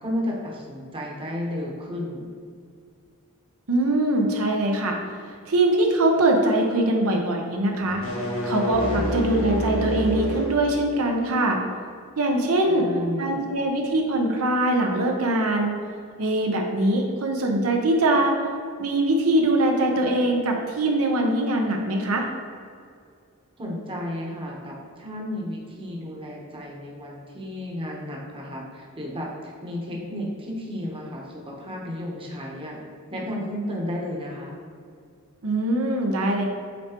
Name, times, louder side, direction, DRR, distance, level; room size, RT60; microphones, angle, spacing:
voice 1, 0.0-2.2 8.9-9.1 12.6-13.5 23.6-32.8 33.1-34.6, left 1 dB, 25° right, -2 dB, 1.0 m, -33 dB
voice 2, 3.7-5.0 5.5-8.0 8.4-11.6 12.2-12.9 13.2-15.8 16.2-18.4 18.8-22.3 35.4-36.4, right 1 dB, 70° right, 1 dB, 0.8 m, -22 dB
sound 1, 7.8-10.6, right 1 dB, 65° left, 1.5 m, -27 dB
8.4 x 4.4 x 3.0 m, 2.2 s
head